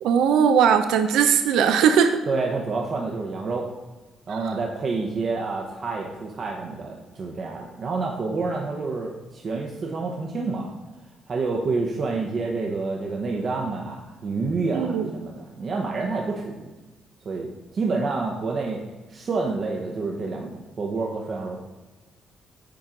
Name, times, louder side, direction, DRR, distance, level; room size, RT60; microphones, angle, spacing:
voice 1, 0.0-2.2 4.4-4.5 14.7-15.1, right 7 dB, 85° right, 8 dB, 0.5 m, -19 dB
voice 2, 2.3-3.7 4.3-10.7 11.3-16.7 17.2-18.8 19.1-21.6, right 3 dB, 50° right, 0 dB, 0.8 m, -28 dB
8.6 x 4.6 x 3.8 m, 1.2 s
cardioid pair, 90°, 0 cm